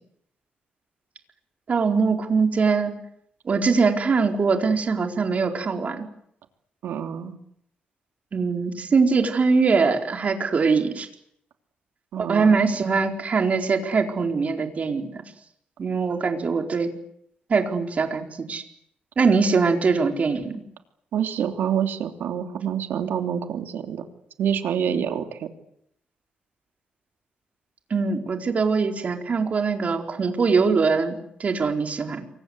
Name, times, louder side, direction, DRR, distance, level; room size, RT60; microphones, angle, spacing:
voice 1, 1.7-2.9 3.5-6.1 8.3-11.1 12.2-15.2 15.8-16.9 17.5-18.6 19.2-20.6 27.9-32.3, right 4 dB, 45° right, 4 dB, 4.3 m, -22 dB
voice 2, 6.8-7.4 12.1-12.7 21.1-24.1 24.4-25.5, right 8 dB, 85° right, 5 dB, 3.1 m, -27 dB
28.5 x 24.0 x 8.1 m, 0.74 s
cardioid pair, 105°, 3 cm